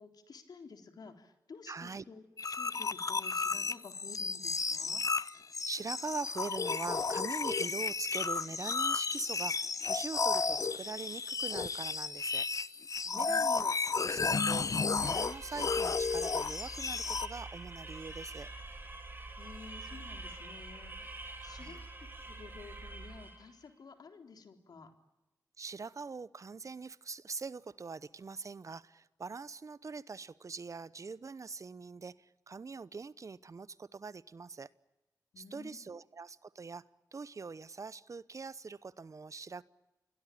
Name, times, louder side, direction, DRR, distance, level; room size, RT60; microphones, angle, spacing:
voice 1, 0.0-5.0 13.0-13.6 19.4-21.8 22.3-24.9 35.3-36.0, left 4 dB, 75° left, 3.8 m, -52 dB
voice 2, 1.7-2.0 5.6-12.5 13.1-18.5 21.4-21.8 25.6-34.7 35.4-36.8 37.1-39.6, right 4 dB, 50° right, 0.9 m, -43 dB
sound 1, 2.4-17.3, left 4 dB, 55° left, 0.9 m, -33 dB
sound 2, 15.0-23.5, right 2 dB, 30° right, 6.8 m, -46 dB
28.5 x 21.5 x 8.6 m
cardioid pair, 65°, 7 cm